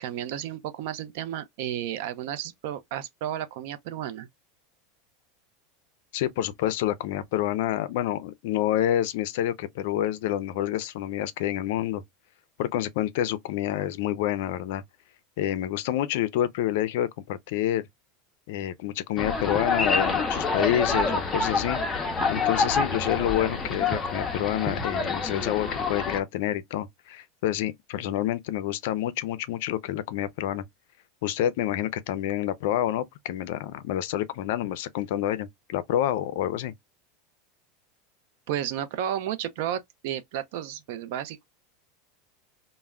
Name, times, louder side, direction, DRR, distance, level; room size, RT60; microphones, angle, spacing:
voice 1, 0.0-4.3 38.5-41.5, right 11 dB, 65° right, 0.4 m, -32 dB
voice 2, 6.1-12.0 12.6-14.8 15.4-17.9 18.5-21.8 22.3-30.6 31.2-36.7, left 12 dB, 70° left, 0.4 m, -28 dB
sound 1, 19.2-26.2, left 4 dB, 20° left, 0.5 m, -27 dB
2.1 x 2.0 x 3.4 m
supercardioid pair, 135°, 0 cm